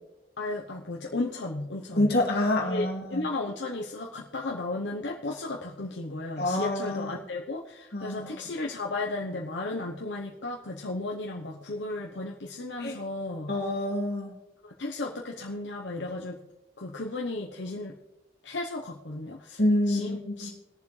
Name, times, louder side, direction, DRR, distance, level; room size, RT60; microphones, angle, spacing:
voice 1, 0.4-2.1 2.6-13.5 14.6-16.4 16.8-17.9 18.4-19.6 19.9-20.5, left 2 dB, 80° left, -1 dB, 1.0 m, -34 dB
voice 2, 1.9-3.2 6.4-7.1 7.9-8.4 12.8-13.0 13.5-14.3 19.6-20.5, left 1 dB, 60° left, -1 dB, 2.3 m, -27 dB
21.0 x 7.1 x 3.3 m, 0.96 s
head